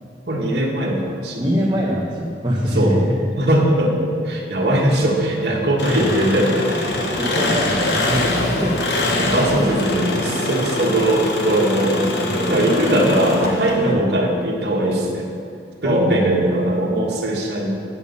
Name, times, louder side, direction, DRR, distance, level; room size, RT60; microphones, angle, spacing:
voice 1, 0.3-1.4 2.7-3.0 3.4-6.5 8.2-8.4 9.2-12.1 12.5-15.3 15.8-17.7, right 1 dB, 65° right, -3 dB, 1.5 m, -20 dB
voice 2, 1.4-3.1 5.4-6.1 6.6-6.7 7.2-8.7 10.2-10.5 12.1-12.8 13.8-14.0 15.8-16.4, equal, 25° right, -5 dB, 0.9 m, -24 dB
Engine, 5.8-13.9, left 1 dB, 70° left, 1.1 m, -23 dB
8.8 x 6.9 x 5.3 m, 2.4 s
head